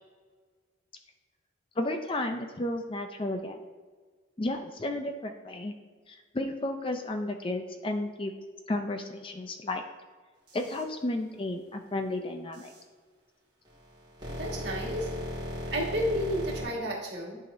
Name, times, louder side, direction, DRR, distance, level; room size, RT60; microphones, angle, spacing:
voice 1, 1.8-3.6 4.4-5.7 6.1-8.3 8.7-9.8 10.5-12.7, left 1 dB, 25° left, 5 dB, 0.4 m, -33 dB
sound 1, 10.5-10.8 12.5-12.8 13.6-16.6, equal, 25° right, 2.1 m, -37 dB
voice 2, 14.3-15.1 15.7-17.4, equal, 55° right, -3 dB, 1.8 m, -31 dB
10.5 x 4.8 x 2.7 m, 1.5 s
head